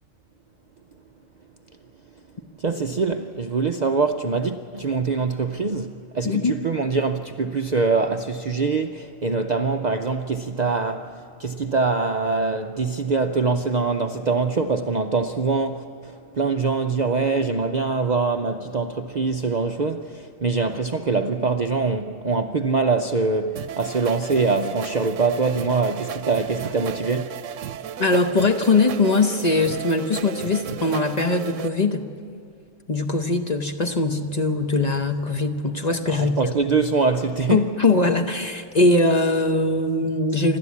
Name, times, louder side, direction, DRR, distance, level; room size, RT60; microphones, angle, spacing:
voice 1, 2.6-11.1 11.4-27.3 36.1-37.6, right 4 dB, 45° right, 0.6 m, -24 dB
sound 1, 23.6-31.7, right 10 dB, 75° right, 1.0 m, -34 dB
voice 2, 28.0-32.1 32.9-36.4 37.5-40.6, left 3 dB, 35° left, 0.9 m, -21 dB
27.0 x 12.5 x 8.4 m
omnidirectional pair, 1.3 m